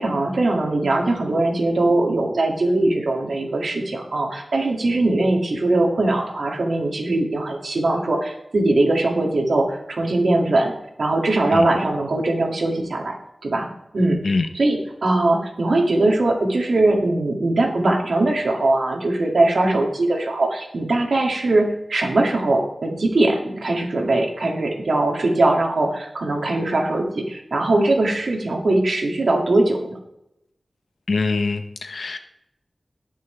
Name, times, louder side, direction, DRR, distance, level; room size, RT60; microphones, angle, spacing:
voice 1, 0.0-10.7 11.0-13.2 13.4-13.7 13.9-29.9, right 2 dB, 80° right, 1 dB, 2.3 m, -21 dB
voice 2, 31.1-32.2, left 3 dB, 80° left, 8 dB, 1.1 m, -23 dB
18.5 x 6.2 x 3.4 m, 0.81 s
wide cardioid pair, 90°, 0 cm